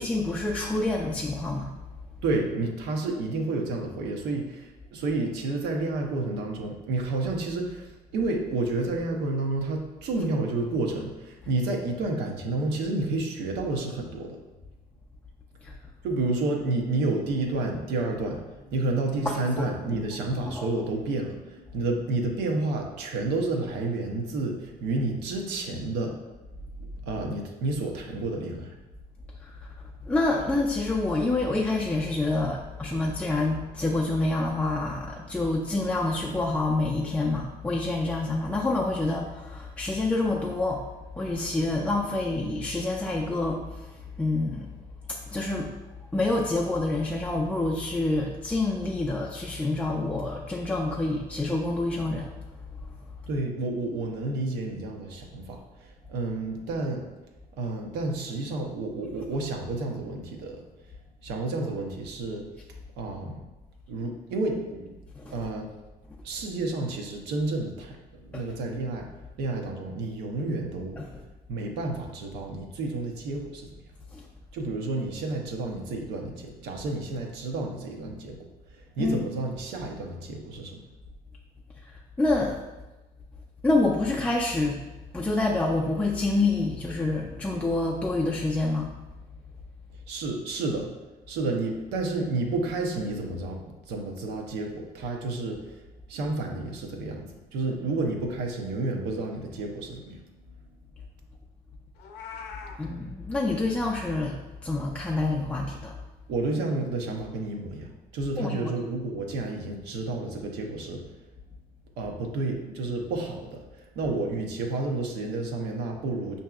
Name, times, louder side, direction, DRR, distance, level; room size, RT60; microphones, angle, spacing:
voice 1, 0.0-1.7 15.6-15.7 19.3-19.7 20.6-20.7 30.1-40.8 41.2-43.8 44.2-44.7 45.1-45.7 46.1-52.3 65.2-65.3 68.3-68.4 71.0-71.1 74.1-74.2 79.0-79.2 82.2-82.6 83.6-84.8 85.1-88.9 102.8-104.4 104.6-105.9 108.4-108.7, left 2 dB, 10° left, -3 dB, 0.4 m, -27 dB
voice 2, 2.2-14.4 16.0-26.2 27.1-28.7 53.3-57.1 57.6-60.6 61.2-62.5 63.0-63.4 63.9-64.9 65.3-65.7 66.2-69.1 69.4-71.0 71.5-73.7 74.5-78.4 78.7-80.8 90.1-90.9 91.3-95.8 96.1-100.2 106.3-107.9 108.1-111.0 112.0-116.4, right 2 dB, 85° right, 2 dB, 0.7 m, -30 dB
Meow, 102.0-102.8, left 6 dB, 80° left, 0.5 m, -41 dB
5.6 x 2.7 x 2.3 m, 1.1 s
cardioid pair, 110°, 17 cm